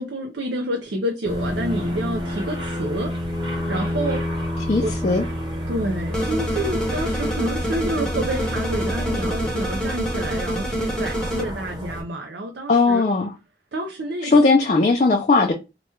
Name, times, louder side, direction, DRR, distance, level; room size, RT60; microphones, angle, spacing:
voice 1, 0.0-3.1 3.7-4.2 4.8-4.9 5.7-13.0 13.7-14.7, right 1 dB, 90° right, 0.6 m, -28 dB
sound 1, 1.2-12.0, left 1 dB, 25° right, 1.0 m, -29 dB
voice 2, 4.7-5.3 12.7-13.3 14.2-15.5, left 3 dB, 40° left, 0.4 m, -18 dB
sound 2, 6.1-11.4, equal, 5° left, 0.7 m, -27 dB
2.9 x 2.3 x 4.2 m
head